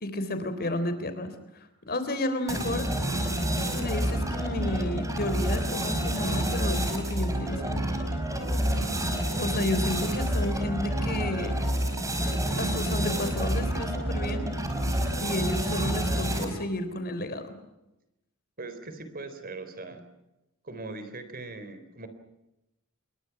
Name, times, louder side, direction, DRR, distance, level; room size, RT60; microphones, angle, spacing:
voice 1, 0.0-1.3 1.9-2.9 3.7-7.8 9.3-11.6 12.6-14.5 15.2-17.6, left 1 dB, 45° left, 10 dB, 3.8 m, -32 dB
sound 1, 2.5-16.7, right 1 dB, 15° right, 5.2 m, -28 dB
voice 2, 18.6-20.0 20.6-22.1, right 3 dB, 45° right, 9 dB, 3.9 m, -40 dB
28.5 x 23.0 x 6.0 m, 0.93 s
head